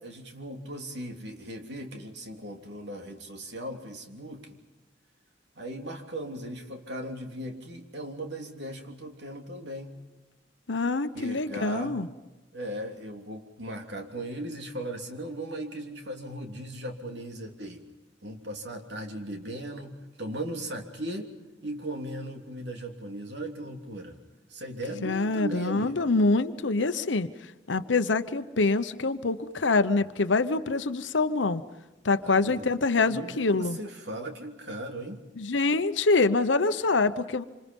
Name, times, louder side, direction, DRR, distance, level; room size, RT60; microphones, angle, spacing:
voice 1, 0.0-4.6 5.6-9.9 11.1-12.0 12.5-17.8 18.2-21.3 21.6-24.2 24.5-26.1 32.2-32.7 33.0-35.2, right 1 dB, 65° right, 3 dB, 3.1 m, -38 dB
voice 2, 10.7-12.1 25.0-27.3 27.7-31.6 32.0-33.8 35.4-37.4, left 3 dB, 80° left, 10 dB, 0.9 m, -25 dB
26.5 x 26.5 x 5.4 m, 1.1 s
head